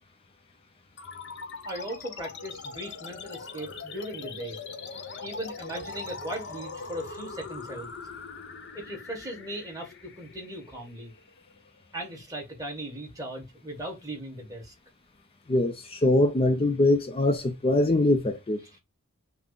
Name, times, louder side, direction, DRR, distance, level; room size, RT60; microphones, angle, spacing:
sound 1, 1.0-11.9, left 4 dB, 50° left, 0.7 m, -41 dB
voice 1, 1.6-4.6 5.2-7.9 8.7-11.1 11.9-14.7, right 1 dB, 15° right, 1.4 m, -38 dB
voice 2, 15.5-18.6, left 2 dB, 25° left, 0.4 m, -23 dB
5.9 x 2.0 x 3.9 m
head